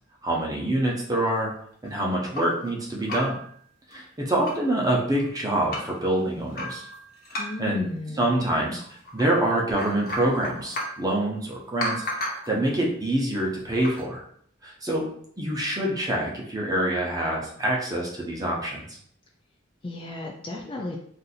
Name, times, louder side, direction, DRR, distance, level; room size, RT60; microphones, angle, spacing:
voice 1, 0.2-1.5 1.8-3.4 3.9-6.9 7.3-8.8 9.1-12.0 12.5-14.2 14.6-15.1 15.4-18.8, right 1 dB, 20° right, -2 dB, 0.7 m, -26 dB
sound 1, 1.3-2.7 3.0-3.5 3.9-4.0 4.2-4.7 5.2-6.0 6.5-7.8 8.8-9.3 9.6-11.0 11.8-12.6 13.7-14.0, left 1 dB, 50° left, 0.8 m, -34 dB
voice 2, 7.3-8.4 19.8-21.0, left 2 dB, 25° left, 0 dB, 0.4 m, -34 dB
2.6 x 2.6 x 4.1 m, 0.63 s
head